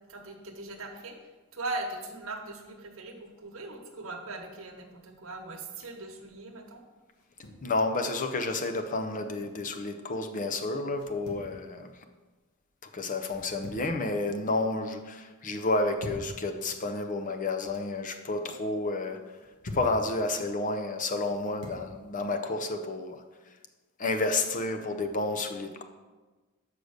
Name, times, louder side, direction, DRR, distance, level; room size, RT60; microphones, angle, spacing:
voice 1, 0.1-1.2 1.5-6.8, right 2 dB, 65° right, 3 dB, 1.1 m, -39 dB
sound 1, 7.1-7.7 9.0-9.6 10.9-11.5 13.2-14.0 14.3-14.8 15.7-16.3 17.4-17.9 19.2-20.0 21.1-21.9, left 1 dB, 85° left, 1.5 m, -45 dB
voice 2, 7.6-11.9 12.9-19.2 19.7-23.2 24.0-25.8, left 2 dB, 35° left, 7 dB, 0.6 m, -30 dB
6.5 x 5.1 x 6.5 m, 1.3 s
head